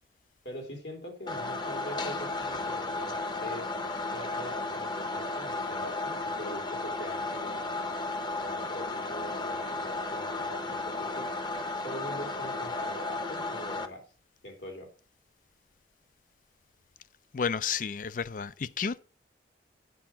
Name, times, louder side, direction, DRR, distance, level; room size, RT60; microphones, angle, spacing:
voice 1, 0.5-3.7 4.1-7.7 8.4-11.3 11.8-14.0 14.4-14.9, equal, 75° left, 3.3 m, -43 dB
sound 1, 1.3-13.9, left 2 dB, 25° left, 0.9 m, -34 dB
voice 2, 17.3-19.0, left 6 dB, 50° left, 0.4 m, -31 dB
9.3 x 5.8 x 7.2 m
head